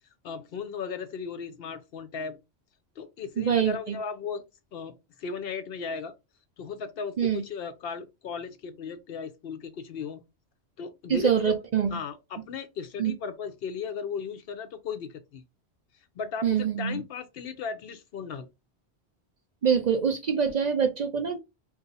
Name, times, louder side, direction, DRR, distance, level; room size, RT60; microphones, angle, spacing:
voice 1, 0.2-2.4 3.0-4.4 4.7-6.1 6.6-10.2 10.8-11.6 11.9-15.4 16.2-18.5, left 6 dB, 65° left, 0.8 m, -36 dB
voice 2, 3.4-4.0 7.2-7.4 11.1-11.9 13.0-13.1 16.4-17.0 19.6-21.4, right 7 dB, 55° right, 0.5 m, -25 dB
2.7 x 2.4 x 3.9 m
omnidirectional pair, 1.1 m